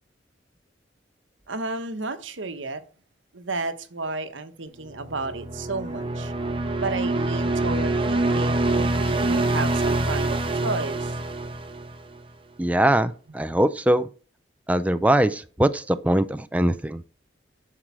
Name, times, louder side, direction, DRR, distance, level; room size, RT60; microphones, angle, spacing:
voice 1, 1.5-2.8 3.3-6.3 6.8-11.2 13.5-13.6, right 3 dB, 85° right, 1.2 m, -32 dB
sound 1, 4.9-12.2, right 2 dB, 30° right, 0.9 m, -25 dB
voice 2, 12.6-14.1 14.7-17.0, right 1 dB, 10° right, 0.4 m, -22 dB
11.5 x 4.8 x 7.4 m
head